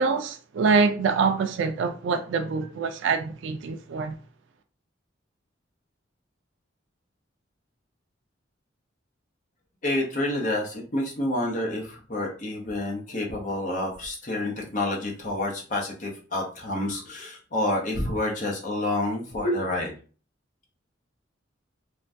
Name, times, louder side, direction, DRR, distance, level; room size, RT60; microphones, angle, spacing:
voice 1, 0.0-4.2, right 4 dB, 70° right, 0.3 m, -25 dB
voice 2, 9.8-19.9, left 1 dB, 40° left, 0.8 m, -28 dB
3.4 x 2.2 x 2.6 m
head